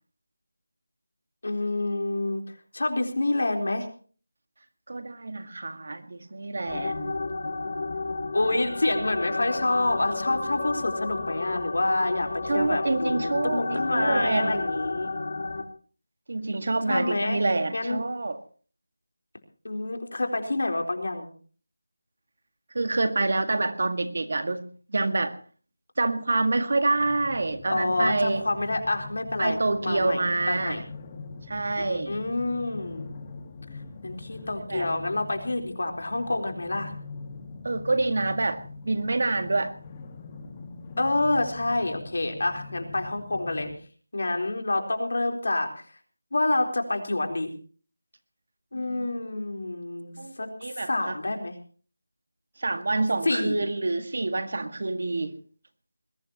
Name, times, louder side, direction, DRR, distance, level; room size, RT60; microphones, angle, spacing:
voice 1, 1.4-2.4 2.7-3.9 8.3-15.1 16.9-17.4 17.7-18.0 19.6-21.3 27.7-30.2 30.5-30.8 31.8-33.1 34.0-36.9 41.0-43.7 44.1-45.7 46.3-47.5 48.7-51.5 53.2-53.6, left 2 dB, 65° left, 4 dB, 4.0 m, -27 dB
voice 2, 4.9-7.2 12.5-14.6 16.3-18.4 22.7-25.4 26.0-28.4 29.4-30.8 31.5-32.1 34.7-34.9 37.6-39.7 48.7-49.1 50.2-51.2 52.6-55.4, right 2 dB, 55° right, 8 dB, 1.8 m, -27 dB
sound 1, 6.7-15.6, left 3 dB, 45° left, 2.1 m, -31 dB
sound 2, 27.0-43.8, left 4 dB, 20° left, 1.6 m, -43 dB
21.0 x 19.0 x 3.0 m, 0.42 s
figure-of-eight pair, 170°, 0 cm